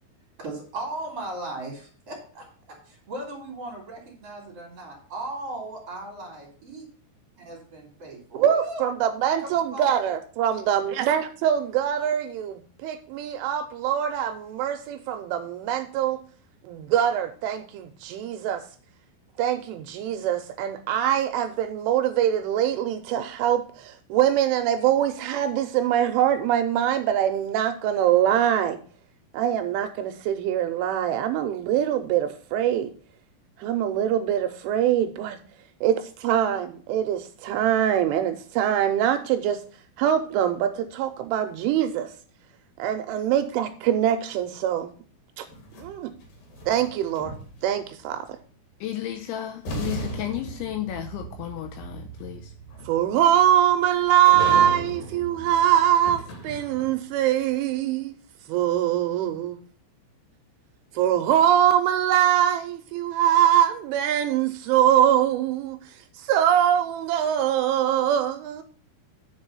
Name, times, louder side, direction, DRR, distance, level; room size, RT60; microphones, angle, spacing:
voice 1, 0.4-6.8 7.5-8.8 9.4-9.8, right 2 dB, 40° right, 2.4 m, -37 dB
voice 2, 8.3-16.2 16.6-18.6 19.4-28.8 29.3-32.9 33.6-35.4 35.8-39.6 40.0-42.1 42.8-44.9 45.4-45.5 45.8-46.1 46.7-47.3 47.6-48.3 52.9-58.2 58.5-59.6 60.9-68.6, right 10 dB, 80° right, 2.9 m, -23 dB
sound 1, 45.5-47.9 49.1-49.2 49.6-57.1, right 2 dB, 55° left, 2.8 m, -37 dB
voice 3, 48.8-52.5, left 12 dB, 80° left, 2.8 m, -33 dB
9.6 x 5.2 x 5.4 m
omnidirectional pair, 5.9 m